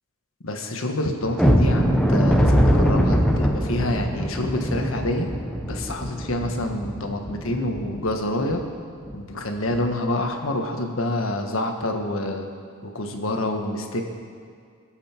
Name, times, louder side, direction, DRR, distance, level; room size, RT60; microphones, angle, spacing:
voice 1, 0.4-5.3 5.6-8.6 9.1-12.5 12.8-14.0, left 1 dB, 70° left, 3 dB, 1.4 m, -27 dB
sound 1, 1.4-8.1 8.5-8.6 9.0-9.2 9.7-9.9, equal, 5° left, 0.9 m, -22 dB
24.5 x 8.1 x 4.5 m, 2.1 s
head